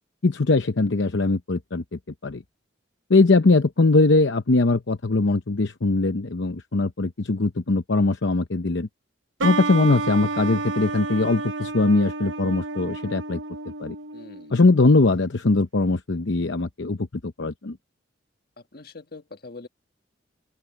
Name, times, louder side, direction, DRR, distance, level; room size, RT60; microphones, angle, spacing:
voice 1, 0.2-2.4 3.1-8.9 9.4-13.4 13.8-13.9 14.5-17.8, left 3 dB, 70° left, 0.8 m, -21 dB
sound 1, 9.4-14.8, right 3 dB, 75° right, 1.0 m, -31 dB
voice 2, 14.1-14.5 18.7-19.7, left 3 dB, 50° left, 1.7 m, -42 dB
open air
head